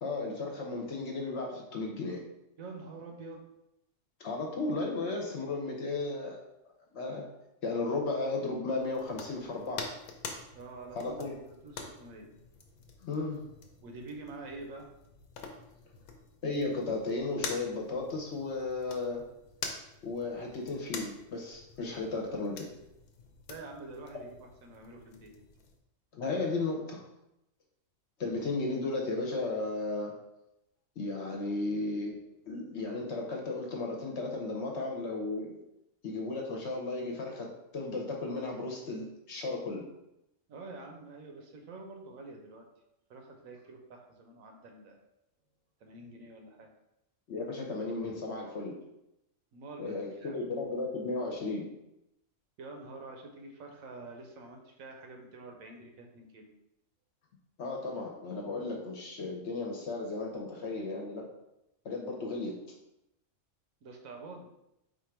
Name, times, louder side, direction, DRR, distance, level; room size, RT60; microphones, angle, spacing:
voice 1, 0.0-2.2 4.2-6.4 6.9-7.2 7.6-9.9 10.9-11.3 13.0-13.4 16.4-19.2 20.0-22.7 26.1-27.0 28.2-30.1 31.0-32.2 32.4-35.5 36.0-37.5 37.7-39.9 47.3-48.8 49.8-51.7 57.6-61.3 61.8-62.6, left 3 dB, 55° left, 0 dB, 1.0 m, -34 dB
voice 2, 2.6-3.5 10.5-11.2 11.6-12.3 13.8-14.9 23.5-25.3 40.5-42.6 43.1-45.0 45.8-46.7 49.5-50.4 52.6-56.5 63.8-64.5, right 3 dB, 75° right, 2 dB, 1.1 m, -47 dB
sound 1, 8.8-25.8, left 5 dB, 85° left, 1.1 m, -46 dB
4.3 x 2.5 x 4.4 m, 0.86 s
omnidirectional pair, 1.5 m